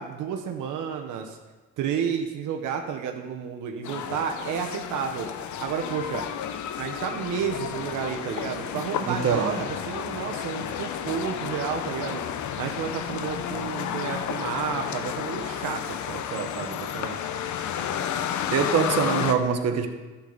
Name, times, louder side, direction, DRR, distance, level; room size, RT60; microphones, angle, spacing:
voice 1, 0.0-1.4 1.8-5.3 5.6-6.2 6.8-12.2 12.6-17.3, right 7 dB, 85° right, 3 dB, 1.0 m, -31 dB
sound 1, 3.8-19.3, left 9 dB, 70° left, 0.8 m, -32 dB
voice 2, 9.0-9.5 18.5-19.9, right 6 dB, 55° right, 6 dB, 1.1 m, -23 dB
11.5 x 8.5 x 4.0 m, 1.2 s
cardioid pair, 90°, 30 cm